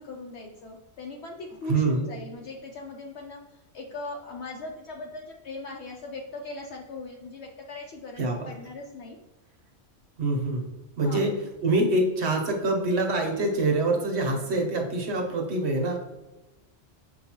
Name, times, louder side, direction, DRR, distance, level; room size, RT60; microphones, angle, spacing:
voice 1, 0.0-9.2 11.0-11.3, left 2 dB, 70° left, 0 dB, 0.8 m, -39 dB
voice 2, 1.7-2.0 8.2-8.5 10.2-10.7 11.0-11.3 11.6-16.1, right 2 dB, 65° right, 1 dB, 1.0 m, -25 dB
6.4 x 2.3 x 2.8 m, 1.0 s
omnidirectional pair, 1.3 m